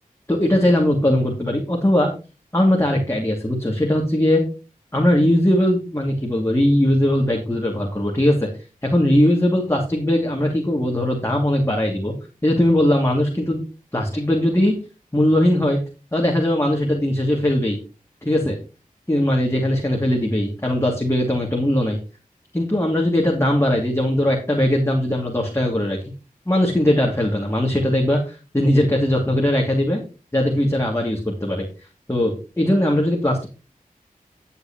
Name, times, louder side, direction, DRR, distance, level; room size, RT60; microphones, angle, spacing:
voice 1, 0.3-2.1 2.5-4.4 4.9-8.5 8.8-12.1 12.4-13.6 13.9-14.7 15.1-15.8 16.1-17.8 18.2-18.6 19.1-22.0 22.5-26.0 26.5-30.0 30.3-31.6 32.1-33.5, left 1 dB, 20° left, -1 dB, 2.8 m, -19 dB
12.0 x 8.3 x 3.2 m, 0.33 s
cardioid pair, 40°, 15 cm